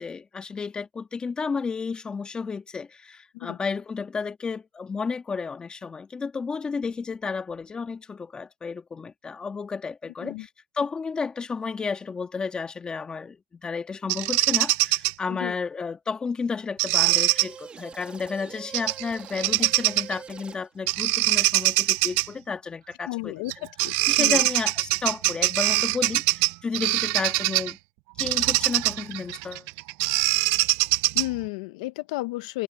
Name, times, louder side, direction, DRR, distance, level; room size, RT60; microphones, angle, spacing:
voice 1, 0.0-10.5 10.7-23.4 24.1-27.8 28.2-29.7, left 5 dB, 25° left, 2.0 m, -32 dB
Bird vocalization bird call bird song, 14.1-15.1 16.8-17.5 18.7-19.0 19.4-20.2 20.9-22.3 23.5-23.6 23.8-27.7 28.2-31.4, right 22 dB, 70° right, 0.8 m, -23 dB
sound 1, 16.9-20.8, right 6 dB, 30° right, 2.7 m, -44 dB
voice 2, 23.1-24.4 31.1-32.6, left 20 dB, 80° left, 1.1 m, -33 dB
supercardioid pair, 105°, 4 cm